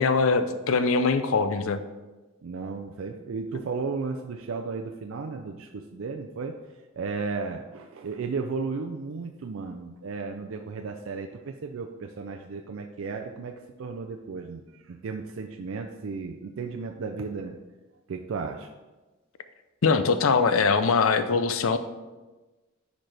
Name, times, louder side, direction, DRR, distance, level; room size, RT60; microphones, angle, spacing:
voice 1, 0.0-1.8 19.8-21.8, left 4 dB, 85° left, 11 dB, 0.5 m, -22 dB
voice 2, 2.4-6.6 7.0-17.6 18.1-18.7, right 4 dB, 75° right, 4 dB, 0.4 m, -34 dB
10.0 x 4.1 x 3.3 m, 1.2 s
head